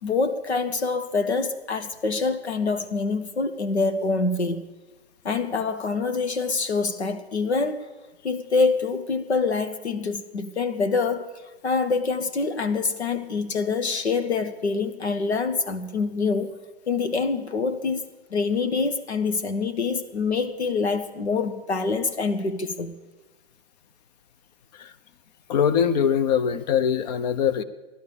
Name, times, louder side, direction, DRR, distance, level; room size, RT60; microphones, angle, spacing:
voice 1, 0.0-4.6 5.2-7.8 8.2-11.3 11.6-16.5 16.9-18.0 18.3-22.9, left 4 dB, 80° left, 10 dB, 1.4 m, -25 dB
voice 2, 25.5-27.6, left 8 dB, 40° left, 13 dB, 0.9 m, -22 dB
15.0 x 11.5 x 6.9 m, 1.2 s
hypercardioid pair, 130°, 32 cm